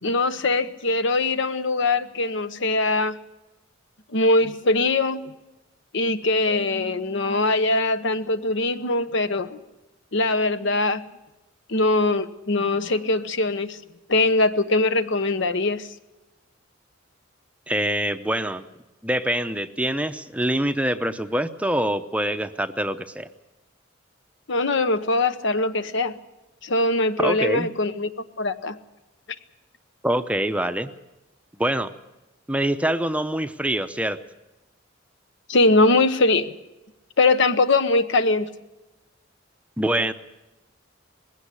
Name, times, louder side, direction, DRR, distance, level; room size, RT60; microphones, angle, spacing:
voice 1, 0.0-3.2 4.1-5.3 5.9-9.6 10.1-11.0 11.7-13.8 14.1-15.9 24.5-26.2 26.6-28.1 28.4-28.8 35.5-36.5 37.2-38.5, left 2 dB, 65° left, 11 dB, 1.0 m, -22 dB
voice 2, 17.7-18.6 19.0-23.3 27.2-27.7 30.0-30.9 31.6-31.9 32.5-34.2 39.8-40.1, right 1 dB, 5° right, 9 dB, 0.7 m, -25 dB
20.5 x 16.5 x 8.4 m, 1.0 s
head